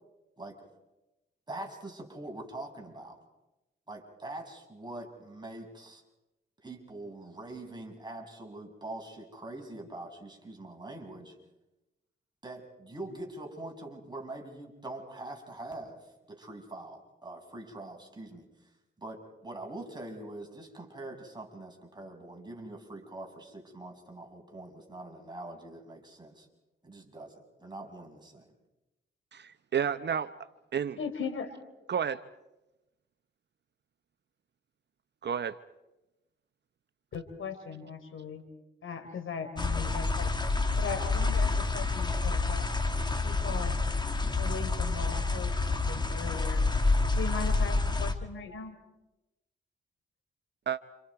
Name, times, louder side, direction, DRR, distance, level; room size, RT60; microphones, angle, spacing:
voice 1, 1.5-3.2 3.9-6.0 6.6-11.4 12.4-18.7 19.0-26.5 26.8-28.5, right 2 dB, 20° right, 1 dB, 6.1 m, -44 dB
voice 2, 29.3-30.4 30.7-31.0 31.9-32.2 35.2-35.6 50.7-50.8, right 8 dB, 55° right, 12 dB, 0.8 m, -31 dB
voice 3, 31.0-31.5 37.1-38.4 38.8-40.3 40.8-42.7 43.2-43.8 44.4-46.6 47.2-48.7, left 5 dB, 70° left, 7 dB, 3.9 m, -38 dB
sound 1, 39.6-48.2, left 3 dB, 20° left, 2.2 m, -28 dB
29.5 x 28.5 x 4.8 m, 0.99 s
cardioid pair, 70°, 21 cm